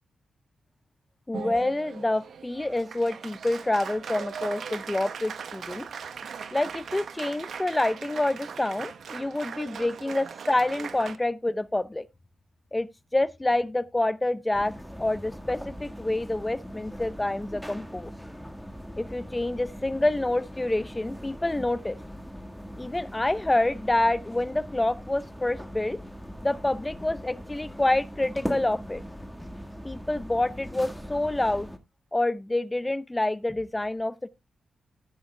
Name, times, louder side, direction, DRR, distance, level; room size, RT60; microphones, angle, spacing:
voice 1, 1.3-5.9 6.5-12.1 12.7-18.1 19.0-22.0 22.8-26.0 26.4-29.0 29.8-31.7 32.1-34.3, left 2 dB, 15° left, 0.7 m, -27 dB
Applause, 1.3-11.2, right 6 dB, 70° right, 1.0 m, -39 dB
sound 1, 14.5-31.8, equal, ahead, 1.6 m, -40 dB
14.5 x 10.0 x 2.2 m
cardioid pair, 65°, 0 cm